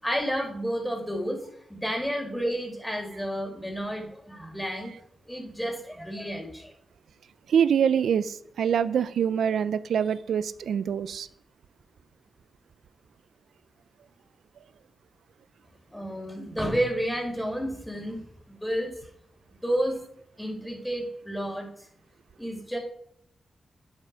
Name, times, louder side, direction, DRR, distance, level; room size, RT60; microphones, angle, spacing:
voice 1, 0.0-4.9 5.3-6.7 15.9-18.2 18.5-18.9 19.6-20.0 20.4-21.7 22.4-22.8, equal, 5° left, 4.6 m, -31 dB
voice 2, 7.5-11.3, right 8 dB, 80° right, 0.5 m, -25 dB
11.0 x 8.1 x 4.8 m
supercardioid pair, 40°, 0 cm